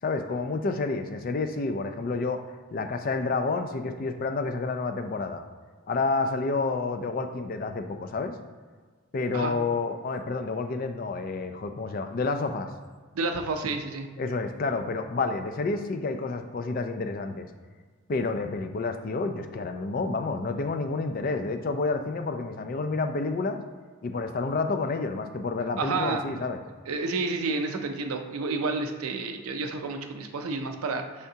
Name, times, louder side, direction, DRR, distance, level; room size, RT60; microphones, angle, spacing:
voice 1, 0.0-5.4 5.9-8.4 9.1-12.7 14.2-17.5 18.1-23.6 24.0-26.6, left 3 dB, 40° left, 7 dB, 0.3 m, -29 dB
voice 2, 13.1-14.1 25.8-26.2 26.9-31.3, right 3 dB, 85° right, 6 dB, 0.5 m, -30 dB
5.5 x 3.5 x 2.7 m, 1.5 s
head